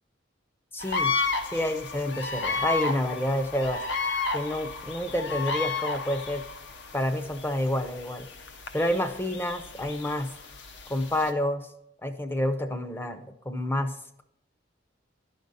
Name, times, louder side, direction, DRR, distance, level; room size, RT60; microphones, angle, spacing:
voice 1, 0.7-1.1 1.5-3.8 4.3-6.4 6.9-8.3 8.7-10.3 10.9-11.7 12.0-13.9, left 1 dB, 10° left, 8 dB, 0.5 m, -28 dB
sound 1, 0.8-11.3, left 4 dB, 65° left, 0.6 m, -33 dB
11.0 x 5.2 x 3.9 m, 0.78 s
head